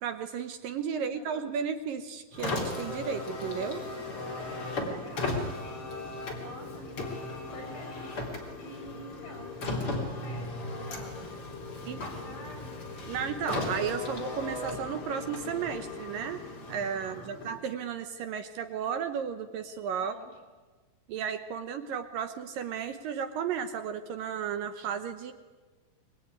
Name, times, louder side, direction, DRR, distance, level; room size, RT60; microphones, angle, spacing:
voice 1, 0.0-3.8 11.9-12.0 13.1-16.4 16.7-20.2 21.1-25.3, right 7 dB, 70° right, 9 dB, 2.5 m, -34 dB
voice 2, 1.0-1.5 4.8-6.0 6.3-7.1 7.5-12.8 17.0-17.7 19.9-20.4, left 1 dB, 60° left, 1 dB, 9.8 m, -49 dB
Car, 2.3-17.7, left 2 dB, 35° left, 4.1 m, -36 dB
23.5 x 23.5 x 9.6 m, 1.3 s
omnidirectional pair, 4.5 m